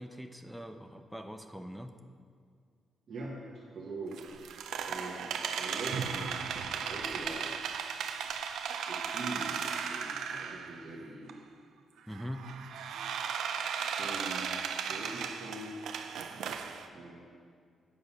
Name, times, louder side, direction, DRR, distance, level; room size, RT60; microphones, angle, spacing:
voice 1, 0.0-1.9 12.1-12.5, equal, ahead, 6 dB, 0.3 m, -42 dB
voice 2, 3.1-3.4 3.7-4.2 4.4-4.6 4.9-6.4 6.7-7.5 8.9-11.4 14.0-15.8 16.3-16.6 16.9-17.2, right 2 dB, 45° right, -5 dB, 1.2 m, -43 dB
sound 1, 4.1-10.9 11.3-11.4 12.1-16.9, right 7 dB, 75° right, 0.5 m, -36 dB
8.7 x 6.4 x 5.4 m, 2.2 s
wide cardioid pair, 165°, 0 cm